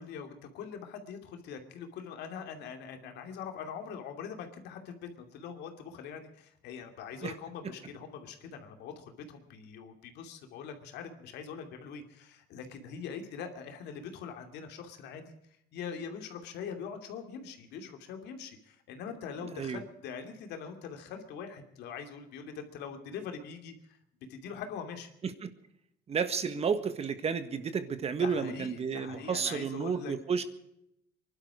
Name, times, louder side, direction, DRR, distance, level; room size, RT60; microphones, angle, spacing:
voice 1, 0.0-15.3 15.7-24.0 24.3-25.1 28.2-30.1, left 6 dB, 80° left, 5 dB, 2.6 m, -43 dB
voice 2, 26.1-30.4, right 6 dB, 35° right, 10 dB, 1.6 m, -31 dB
24.0 x 12.0 x 4.9 m, 0.79 s
cardioid pair, 110°, 17 cm